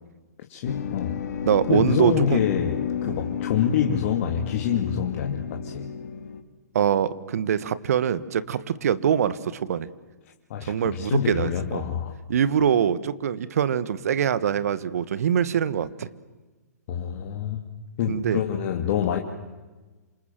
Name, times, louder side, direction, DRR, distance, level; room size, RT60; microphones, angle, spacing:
voice 1, 0.5-1.2 1.7-5.9 10.5-12.1 16.9-17.6 18.0-19.2, left 8 dB, 50° left, 3 dB, 2.5 m, -26 dB
Ceremony of the Unspeakable, 0.7-6.4, left 8 dB, 65° left, 2.5 m, -32 dB
voice 2, 1.4-2.4 6.7-9.9 10.7-11.9 12.3-16.1 18.1-18.4, right 8 dB, 60° right, 16 dB, 1.5 m, -24 dB
27.5 x 26.5 x 7.7 m, 1.2 s
hypercardioid pair, 125°, 9 cm